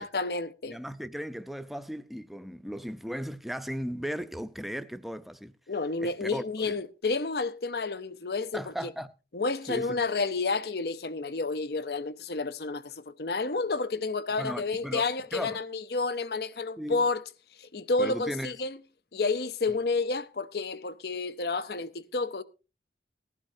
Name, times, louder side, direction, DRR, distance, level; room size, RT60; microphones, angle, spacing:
voice 1, 0.0-0.8 5.7-8.9 9.3-17.2 17.6-18.8 19.1-22.4, left 3 dB, 60° left, 0.7 m, -30 dB
voice 2, 0.7-5.5 6.0-6.8 8.5-9.1 9.7-10.0 14.4-15.0 15.3-15.6 16.8-17.0 18.0-18.5, equal, ahead, 0.5 m, -36 dB
19.0 x 12.0 x 2.7 m
head